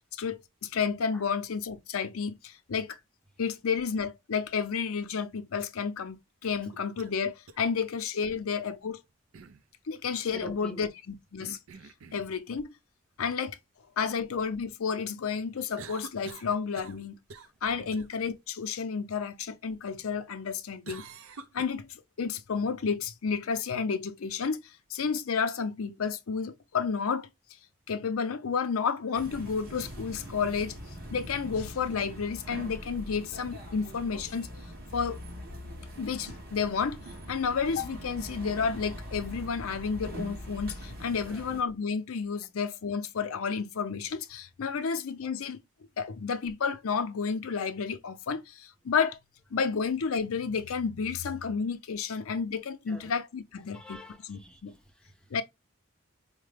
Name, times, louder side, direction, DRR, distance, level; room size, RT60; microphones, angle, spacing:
voice 1, 0.1-3.0 3.4-9.0 9.9-11.6 12.1-12.7 13.2-13.6 14.0-17.2 17.6-21.1 21.5-27.3 27.9-30.8 31.1-34.5 34.9-35.2 36.0-37.0 37.3-45.6 46.0-49.2 49.5-54.0 54.3-54.7 55.3-55.4, left 5 dB, 75° left, 0.5 m, -31 dB
sound 1, 6.6-7.1 7.5-7.6 9.3-9.6 11.4-12.3 15.8-17.0 17.3-17.6 17.9-18.1 20.9-21.6, right 4 dB, 70° right, 0.5 m, -46 dB
voice 2, 10.3-10.9 17.8-17.9 41.1-41.4 52.9-53.1 53.7-55.4, equal, 5° left, 0.6 m, -47 dB
sound 2, 29.1-41.6, equal, 45° right, 1.3 m, -42 dB
4.6 x 2.1 x 3.2 m
head